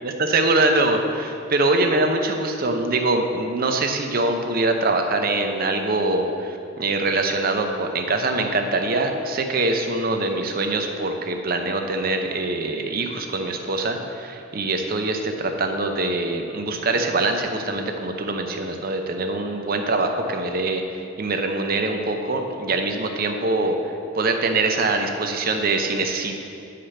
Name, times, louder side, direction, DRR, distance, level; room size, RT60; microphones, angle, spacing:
voice 1, 0.3-23.8 24.1-26.3, right 2 dB, 50° right, 4 dB, 0.7 m, -23 dB
9.1 x 5.0 x 5.7 m, 2.6 s
head